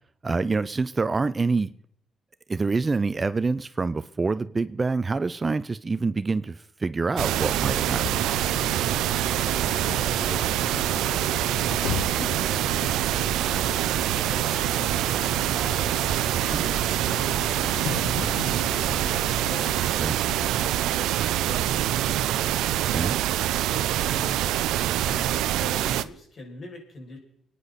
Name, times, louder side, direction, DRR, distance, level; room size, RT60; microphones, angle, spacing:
voice 1, 0.2-1.7 2.5-8.2 20.0-20.2 22.9-23.2, right 4 dB, 30° right, 14 dB, 0.5 m, -26 dB
sound 1, 7.2-26.0, right 13 dB, 90° right, 0.6 m, -25 dB
Bus, 7.8-20.2, left 9 dB, 85° left, 1.0 m, -38 dB
voice 2, 9.8-16.0 16.5-22.9 23.6-24.6 25.0-27.2, left 2 dB, 45° left, -1 dB, 6.5 m, -43 dB
25.5 x 9.9 x 4.2 m, 0.67 s
cardioid pair, 90°, 0 cm